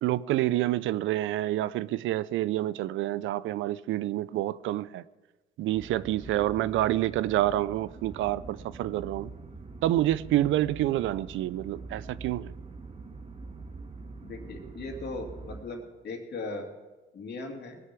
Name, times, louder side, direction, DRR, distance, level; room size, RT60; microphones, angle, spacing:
voice 1, 0.0-5.0 5.6-9.3 9.8-12.5, right 14 dB, 80° right, 0.4 m, -28 dB
sound 1, 5.7-15.6, right 3 dB, 30° right, 1.6 m, -44 dB
voice 2, 14.2-16.7 17.1-17.8, left 2 dB, 55° left, 2.5 m, -38 dB
19.5 x 6.7 x 6.0 m
cardioid pair, 90°, 20 cm